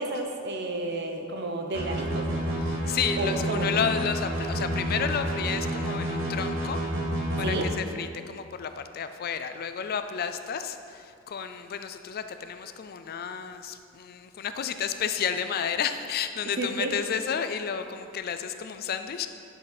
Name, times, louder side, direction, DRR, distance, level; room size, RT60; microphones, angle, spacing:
voice 1, 0.0-2.4 3.2-3.7 7.4-7.7 16.6-16.9, right 2 dB, 55° right, 4 dB, 0.8 m, -31 dB
Bass Arp, 1.7-7.6, right 1 dB, 85° right, 2.1 m, -29 dB
voice 2, 2.6-6.8 7.4-19.3, left 7 dB, 45° left, 9 dB, 0.4 m, -31 dB
10.0 x 6.2 x 4.1 m, 2.3 s
head